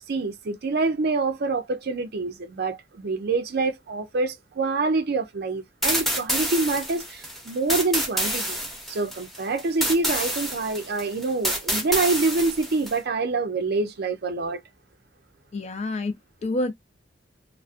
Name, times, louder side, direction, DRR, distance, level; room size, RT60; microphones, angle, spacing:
voice 1, 0.1-8.6 8.9-14.6, right 3 dB, 60° right, 0.5 m, -26 dB
sound 1, 5.8-13.0, equal, ahead, 0.7 m, -28 dB
voice 2, 15.5-16.7, left 2 dB, 35° left, 0.4 m, -28 dB
2.4 x 2.1 x 2.4 m
head